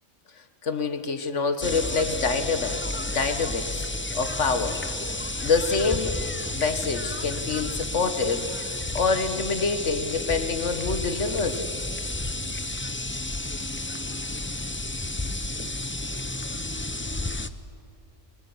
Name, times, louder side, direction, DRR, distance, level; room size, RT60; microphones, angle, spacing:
voice 1, 0.6-3.8 4.1-4.8 5.4-6.2 6.5-11.7, left 4 dB, 75° left, 9 dB, 1.8 m, -26 dB
sound 1, 1.6-17.5, left 2 dB, 15° left, 0.6 m, -31 dB
25.0 x 19.5 x 9.6 m, 2.6 s
omnidirectional pair, 1.3 m